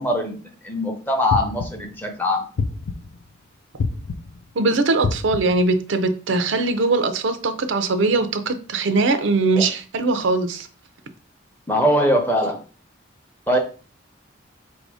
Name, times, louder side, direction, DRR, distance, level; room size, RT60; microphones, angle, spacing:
voice 1, 0.0-2.4 9.6-9.7 11.7-12.6 13.5-13.6, equal, 10° left, 0.7 m, -21 dB
sound 1, 1.3-1.9 2.6-3.2 3.8-4.4 5.0-5.7, left 4 dB, 65° left, 0.4 m, -27 dB
voice 2, 4.6-10.7, right 3 dB, 65° right, 0.5 m, -21 dB
3.9 x 2.7 x 4.7 m
head